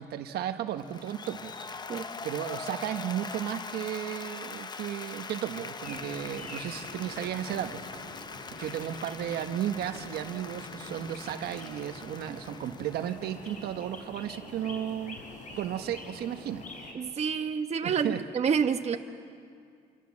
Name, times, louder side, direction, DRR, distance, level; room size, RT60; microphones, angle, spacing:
voice 1, 0.0-1.5 2.2-7.8 8.6-15.2 15.6-16.6 17.8-18.2, right 11 dB, 70° right, 8 dB, 1.3 m, -34 dB
Applause, 0.8-14.0, left 4 dB, 25° left, 0.9 m, -42 dB
sound 1, 5.8-16.9, left 2 dB, 50° left, 5.6 m, -46 dB
voice 2, 16.9-19.0, right 6 dB, 40° right, 6 dB, 1.2 m, -28 dB
28.0 x 25.0 x 7.5 m, 2.3 s
cardioid pair, 110°, 17 cm